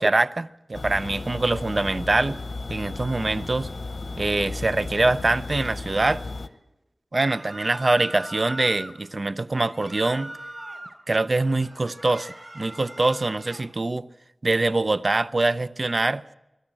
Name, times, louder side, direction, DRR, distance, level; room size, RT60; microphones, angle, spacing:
voice 1, 0.0-2.4 2.7-3.7 4.2-6.2 7.1-10.3 11.1-14.0 14.4-16.2, right 2 dB, 55° right, 0.6 m, -24 dB
refrigerator buzzing, 0.7-6.5, left 3 dB, 80° left, 1.0 m, -34 dB
sound 1, 7.2-8.9 9.6-11.0 11.4-13.7, right 1 dB, 35° right, 3.8 m, -40 dB
23.0 x 13.0 x 8.9 m
wide cardioid pair, 60°, 0 cm